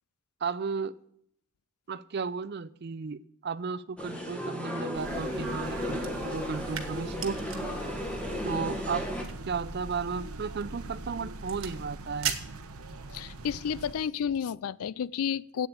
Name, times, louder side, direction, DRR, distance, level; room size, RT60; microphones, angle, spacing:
voice 1, 0.4-0.9 1.9-7.4 8.4-9.1 9.5-12.4, right 5 dB, 45° right, 0.4 m, -34 dB
sound 1, 4.0-9.2, left 1 dB, 5° left, 1.5 m, -35 dB
sound 2, 4.9-13.9, right 2 dB, 80° right, 0.9 m, -42 dB
sound 3, 6.0-13.3, right 8 dB, 60° right, 1.5 m, -41 dB
voice 2, 13.1-15.7, left 7 dB, 80° left, 0.4 m, -31 dB
8.5 x 7.8 x 8.6 m
head